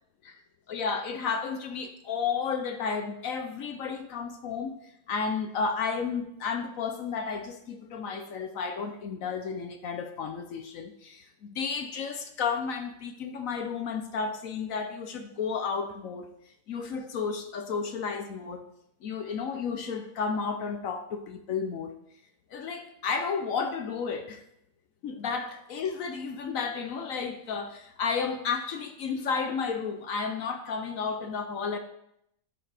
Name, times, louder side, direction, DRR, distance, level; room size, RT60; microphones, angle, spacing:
voice 1, 0.7-4.8 5.1-16.3 16.7-18.6 19.0-21.9 22.5-24.4 25.0-31.8, left 5 dB, 65° left, 6 dB, 1.0 m, -32 dB
12.0 x 6.1 x 3.4 m, 0.77 s
omnidirectional pair, 1.8 m